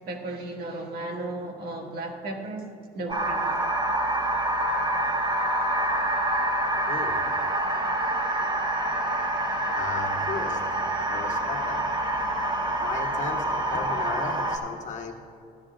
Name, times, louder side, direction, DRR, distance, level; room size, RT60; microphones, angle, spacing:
voice 1, 0.1-2.7 2.9-3.6, right 2 dB, 65° right, 1 dB, 1.8 m, -35 dB
sound 1, 3.1-14.6, right 1 dB, 25° right, 1.4 m, -26 dB
voice 2, 6.9-7.2 9.7-10.6 11.1-11.8 12.8-15.1, left 5 dB, 45° left, 3 dB, 1.3 m, -35 dB
16.0 x 12.0 x 2.4 m, 2.4 s
cardioid pair, 110°, 17 cm